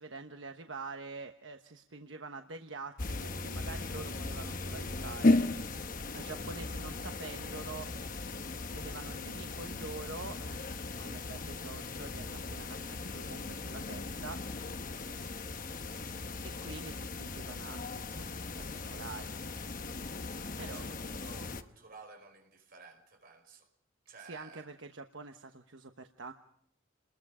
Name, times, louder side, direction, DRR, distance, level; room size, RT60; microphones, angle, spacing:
voice 1, 0.0-5.4 6.1-7.9 8.7-14.9 16.4-19.5 20.6-20.8 24.3-26.3, right 3 dB, 70° right, 6 dB, 1.2 m, -46 dB
sound 1, 3.0-21.6, left 2 dB, 45° left, 1.1 m, -36 dB
voice 2, 15.0-15.6 20.3-23.7 24.1-24.7, right 4 dB, 45° right, 4 dB, 5.1 m, -54 dB
29.5 x 21.5 x 5.0 m, 0.69 s
head